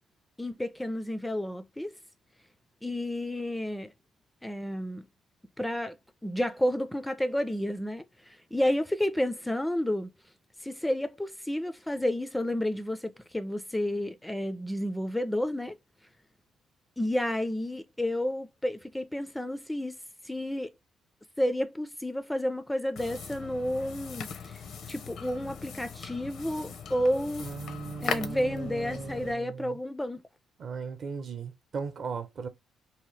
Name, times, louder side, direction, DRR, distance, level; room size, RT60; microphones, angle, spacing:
voice 1, 0.4-1.9 2.8-3.9 4.4-5.0 5.6-5.9 6.2-10.1 10.6-15.8 17.0-20.0 20.2-20.7 21.4-24.6 24.9-27.5 28.0-30.2, left 1 dB, 5° left, 0.3 m, -31 dB
sound 1, 23.0-29.3, left 6 dB, 70° left, 0.6 m, -39 dB
voice 2, 27.4-29.8 30.6-32.5, right 5 dB, 55° right, 0.6 m, -37 dB
2.8 x 2.0 x 3.1 m
cardioid pair, 90°, 0 cm